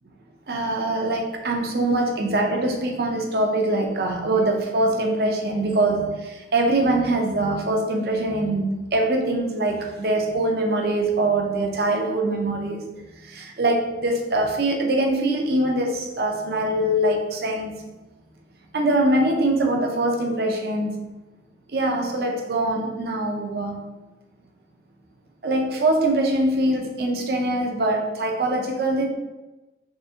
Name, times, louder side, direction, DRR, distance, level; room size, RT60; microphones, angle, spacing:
voice 1, 0.5-12.8 13.2-17.7 18.7-20.9 21.7-23.9 25.4-29.1, right 1 dB, 55° right, 2 dB, 0.6 m, -23 dB
3.7 x 3.3 x 2.7 m, 1.1 s
head